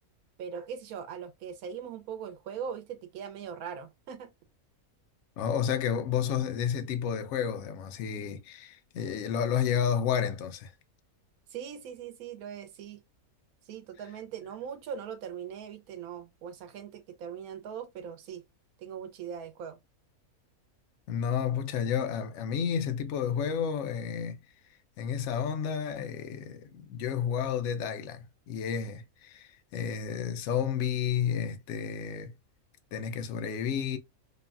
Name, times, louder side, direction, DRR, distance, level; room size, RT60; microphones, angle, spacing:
voice 1, 0.4-4.3 11.5-13.0 13.7-18.4 18.8-19.8, right 7 dB, 85° right, 1.1 m, -40 dB
voice 2, 5.4-10.7 21.1-24.4 25.0-32.3 32.9-34.0, left 8 dB, 65° left, 0.8 m, -31 dB
3.0 x 2.2 x 2.3 m
omnidirectional pair, 1.5 m